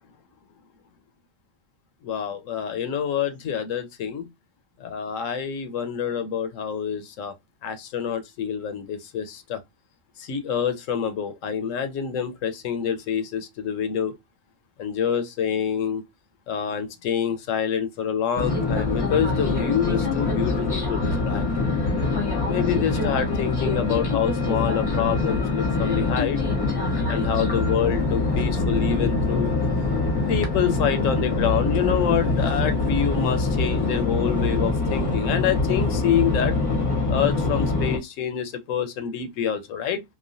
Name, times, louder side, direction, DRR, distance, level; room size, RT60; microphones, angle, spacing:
voice 1, 2.0-4.3 4.8-7.3 7.6-9.6 10.2-14.1 14.8-16.0 16.5-21.4 22.5-26.4 27.1-29.5 30.3-36.5 37.1-40.0, left 8 dB, 75° left, 0.9 m, -27 dB
sound 1, 18.4-38.0, left 3 dB, 25° left, 0.6 m, -24 dB
3.0 x 2.2 x 2.5 m
omnidirectional pair, 1.3 m